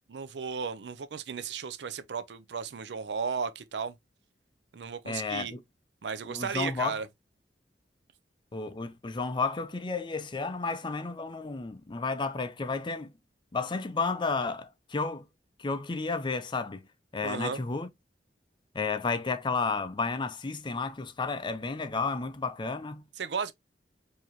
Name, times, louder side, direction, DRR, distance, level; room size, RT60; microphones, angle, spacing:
voice 1, 0.1-3.9 4.7-5.5 6.0-7.1 17.2-17.6 23.2-23.5, right 6 dB, 75° right, 0.5 m, -35 dB
voice 2, 5.1-5.6 6.3-7.0 8.5-13.1 13.5-15.3 15.6-16.9 17.1-17.9 18.7-23.1, left 4 dB, 25° left, 0.5 m, -32 dB
4.7 x 2.8 x 2.9 m
head